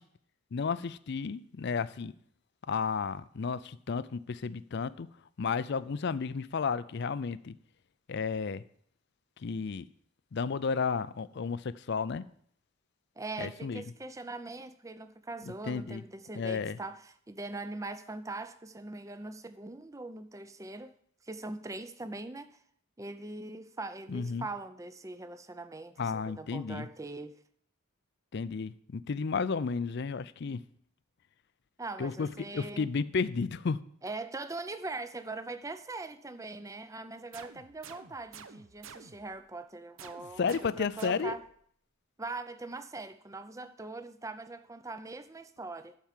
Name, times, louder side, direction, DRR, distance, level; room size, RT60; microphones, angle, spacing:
voice 1, 0.5-2.1 2.7-5.1 5.4-7.5 8.1-8.6 9.4-9.8 10.3-12.2 13.4-13.8 15.7-16.0 16.4-16.8 24.1-24.5 26.0-26.9 28.3-30.6 32.0-33.8 40.4-41.3, left 5 dB, 55° left, 0.4 m, -32 dB
voice 2, 13.2-20.9 21.2-22.6 23.0-27.4 31.8-32.9 34.0-41.4 42.2-46.0, right 2 dB, 15° right, 0.5 m, -41 dB
sound 1, 37.3-39.4 40.0-41.6, right 6 dB, 70° right, 0.7 m, -50 dB
11.5 x 4.7 x 7.4 m
head